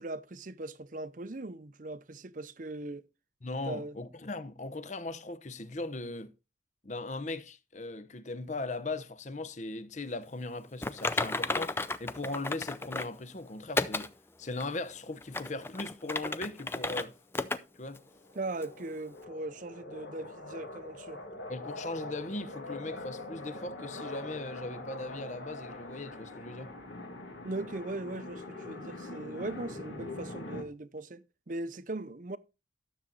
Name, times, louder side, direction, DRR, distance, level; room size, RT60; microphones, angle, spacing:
voice 1, 0.0-3.0 3.7-4.0 18.3-21.2 27.4-32.4, right 2 dB, 45° right, 0.6 m, -39 dB
voice 2, 3.4-6.3 6.8-14.1 14.4-17.1 17.8-18.0 21.5-26.8, left 2 dB, 40° left, 0.8 m, -38 dB
Typing, 10.8-13.2 13.8-14.1 14.6-14.7 15.2-17.0 17.3-17.6 17.9-18.0 18.6-18.7, left 3 dB, 10° left, 0.4 m, -33 dB
sound 1, 18.0-30.6, left 2 dB, 80° left, 2.4 m, -43 dB
12.5 x 7.4 x 4.0 m
head